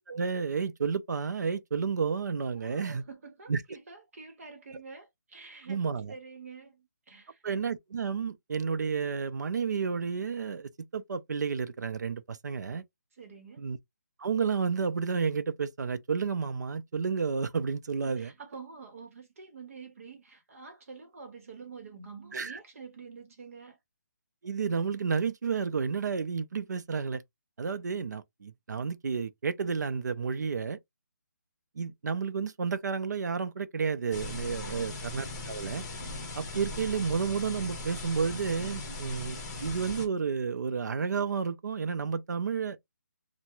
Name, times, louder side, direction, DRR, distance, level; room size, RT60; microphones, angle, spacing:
voice 1, 0.1-3.0 3.5-3.6 5.7-6.1 7.4-12.8 13.6-13.8 14.2-18.3 22.3-22.6 24.4-27.2 27.6-30.8 31.8-35.8 36.4-42.8, right 5 dB, 70° right, 0.5 m, -31 dB
voice 2, 2.5-7.4 13.1-13.7 18.0-23.8 34.5-35.0, right 5 dB, 50° right, 1.0 m, -48 dB
sound 1, 34.1-40.1, left 2 dB, 20° left, 1.1 m, -39 dB
3.3 x 2.2 x 3.0 m
hypercardioid pair, 160°, 10 cm